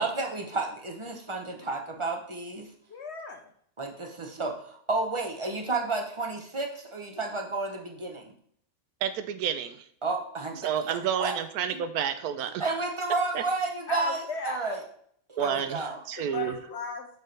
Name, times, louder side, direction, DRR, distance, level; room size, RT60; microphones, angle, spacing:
voice 1, 0.0-2.7 3.8-8.3 10.0-11.4 11.7-11.8 12.6-14.8 15.3-16.0, right 3 dB, 25° right, 2 dB, 0.7 m, -31 dB
voice 2, 2.9-3.5 13.9-14.8 15.4-15.6 16.2-17.1, left 4 dB, 55° left, 4 dB, 0.9 m, -37 dB
voice 3, 9.0-9.9 10.6-12.6 13.3-13.4 15.4-16.6, right 9 dB, 90° right, 10 dB, 1.1 m, -30 dB
6.6 x 5.9 x 3.3 m, 0.64 s
omnidirectional pair, 1.6 m